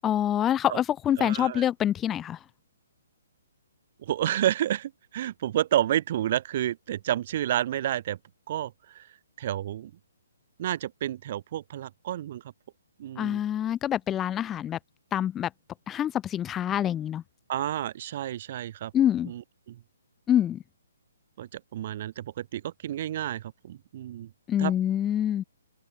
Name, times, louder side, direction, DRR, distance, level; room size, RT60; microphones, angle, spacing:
voice 1, 0.0-2.4 13.2-14.8 15.1-15.5 15.9-17.2 18.9-19.3 20.3-20.6 24.5-25.4, left 10 dB, 10° left, 0.6 m, -26 dB
voice 2, 1.2-1.6 4.0-8.2 8.5-9.1 9.4-9.9 10.6-12.4 13.0-13.4 17.5-18.9 19.2-19.4 19.7-19.8 21.4-24.3 24.6-24.7, right 12 dB, 35° right, 1.4 m, -30 dB
hypercardioid pair, 170°, 0 cm